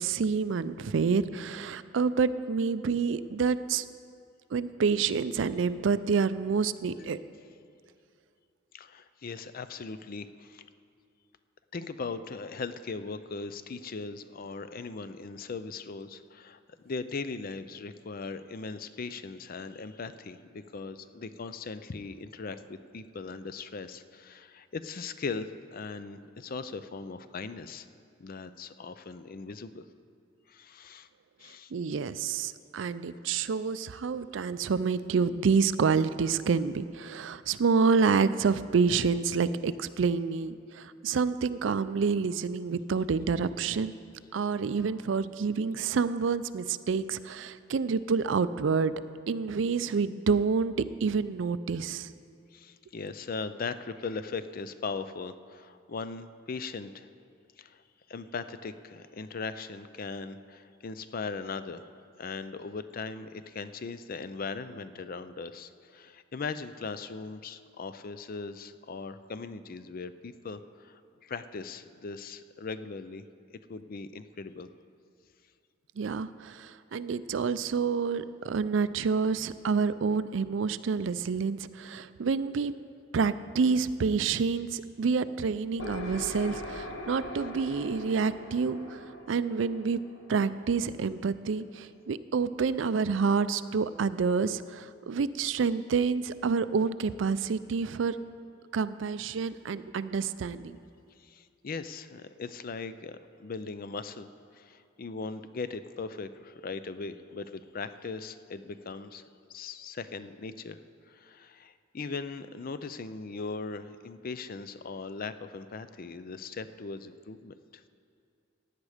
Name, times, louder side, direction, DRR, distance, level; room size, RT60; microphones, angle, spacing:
voice 1, 0.0-3.8 4.5-7.2 31.7-43.9 44.3-48.9 49.3-50.7 51.0-52.1 76.0-82.7 83.1-89.0 89.3-90.0 90.3-98.2 98.7-100.8, right 5 dB, 65° right, 14 dB, 0.4 m, -28 dB
voice 2, 8.7-10.6 11.7-16.6 16.8-27.9 28.2-29.9 30.5-31.1 31.4-31.7 34.4-34.5 52.5-57.1 57.6-57.8 58.1-61.9 62.2-73.2 73.5-74.7 101.2-109.2 109.5-110.8 111.1-117.8, left 4 dB, 45° left, 12 dB, 0.5 m, -39 dB
sound 1, 85.8-91.4, left 1 dB, 75° left, 1.4 m, -42 dB
16.0 x 9.7 x 5.0 m, 2.4 s
head